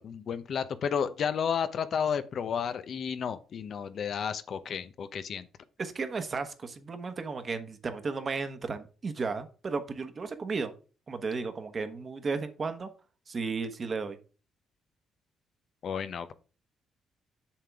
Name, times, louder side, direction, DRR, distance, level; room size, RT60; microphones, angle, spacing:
voice 1, 0.0-5.5 15.8-16.3, left 7 dB, 60° left, 12 dB, 0.8 m, -32 dB
voice 2, 5.8-10.7 11.1-12.9 13.3-14.2, right 4 dB, 40° right, 8 dB, 1.3 m, -34 dB
7.3 x 6.7 x 3.6 m, 0.35 s
cardioid pair, 90°, 0 cm